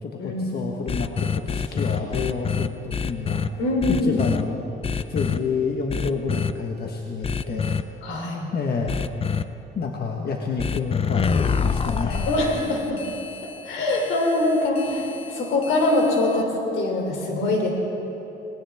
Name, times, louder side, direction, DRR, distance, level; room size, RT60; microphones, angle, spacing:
voice 1, 0.0-3.4 3.9-4.6 5.1-7.8 8.5-9.0 9.7-12.3, left 4 dB, 55° left, 0 dB, 1.4 m, -28 dB
sound 1, 0.9-3.5 3.8-4.4 4.8-5.4 5.9-6.5 7.2-7.8 8.9-9.4 10.6-16.4, left 6 dB, 30° left, 0.5 m, -27 dB
voice 2, 3.6-4.2 8.0-8.5 12.3-13.0 13.6-17.7, left 2 dB, 80° left, 1 dB, 3.3 m, -23 dB
20.0 x 17.0 x 3.6 m, 3.0 s
cardioid pair, 90°, 20 cm